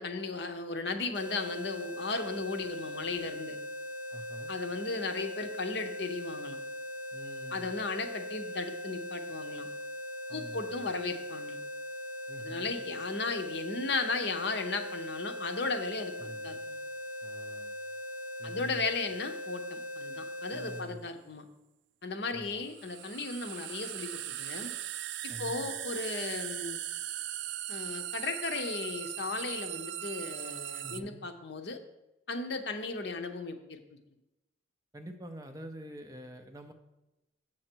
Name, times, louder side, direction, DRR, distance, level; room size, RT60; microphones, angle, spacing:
voice 1, 0.0-3.6 4.5-6.6 7.5-9.7 10.3-11.6 12.4-16.8 18.4-21.5 22.0-24.7 25.2-26.8 27.7-31.8 32.3-33.8, left 3 dB, 60° left, 7 dB, 0.7 m, -36 dB
sound 1, 1.1-20.9, left 1 dB, 40° left, 1.3 m, -40 dB
voice 2, 4.1-4.5 7.1-7.7 10.3-10.9 12.3-12.8 16.2-16.6 17.2-17.8 18.4-18.9 20.5-21.1 22.3-22.6 25.3-25.7 30.8-31.2 34.9-36.7, right 1 dB, 15° right, 5 dB, 0.6 m, -46 dB
sound 2, 20.5-20.6 22.6-31.0, right 12 dB, 65° right, 0.4 m, -39 dB
7.4 x 6.4 x 4.5 m, 0.98 s
head